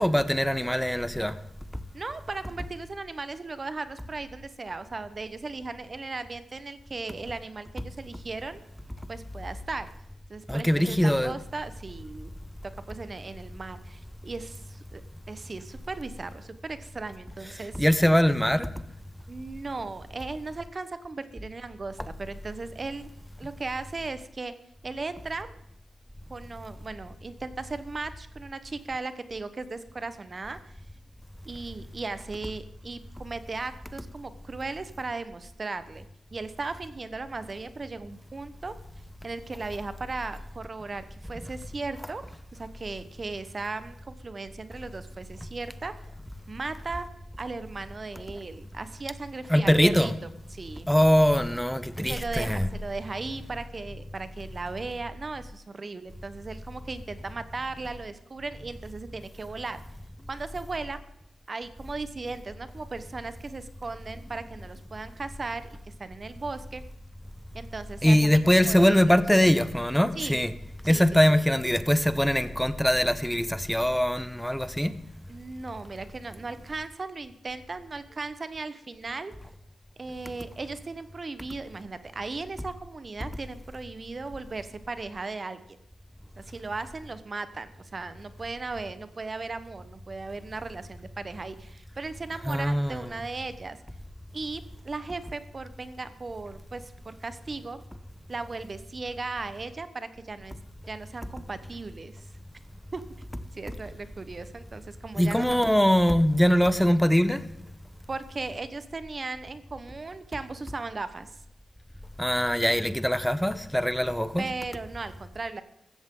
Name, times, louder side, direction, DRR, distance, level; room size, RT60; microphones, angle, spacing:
voice 1, 0.0-1.4 10.5-11.3 17.5-18.7 22.0-22.1 41.4-41.5 42.0-42.1 49.5-50.2 50.9-52.7 68.0-70.5 70.8-74.9 92.3-93.2 103.7-103.8 105.1-107.4 112.2-114.5, equal, 5° left, 0.9 m, -22 dB
voice 2, 1.9-8.6 9.1-9.9 10.3-12.3 12.6-15.0 15.3-17.8 19.3-23.1 23.4-24.5 24.8-25.5 26.3-30.7 31.4-36.1 36.3-38.7 39.2-42.2 42.5-45.9 46.5-47.1 47.4-50.1 50.5-50.9 52.0-59.8 60.3-61.0 61.5-66.8 67.5-69.2 70.1-70.4 70.8-71.0 75.3-79.3 80.0-85.6 86.4-93.8 94.3-97.8 98.3-100.6 100.9-102.2 102.9-103.0 103.5-105.6 108.1-111.3 114.4-115.6, right 3 dB, 45° right, 1.1 m, -37 dB
15.5 x 14.0 x 3.9 m
supercardioid pair, 45°, 0 cm